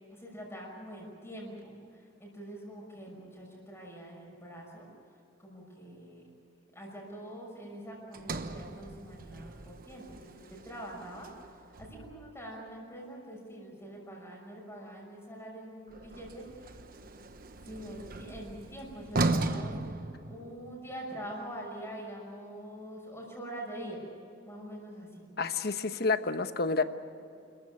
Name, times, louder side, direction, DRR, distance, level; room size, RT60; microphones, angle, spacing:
voice 1, 0.1-4.9 5.4-6.2 6.7-11.3 11.8-16.7 17.6-24.0 24.5-25.3, right 1 dB, 15° left, -2 dB, 6.1 m, -44 dB
Sliding door, 8.1-12.4 15.9-20.8, right 2 dB, 50° right, 1.1 m, -37 dB
voice 2, 25.4-26.8, left 4 dB, 60° left, 10 dB, 1.1 m, -29 dB
28.0 x 14.5 x 9.7 m, 2.6 s
head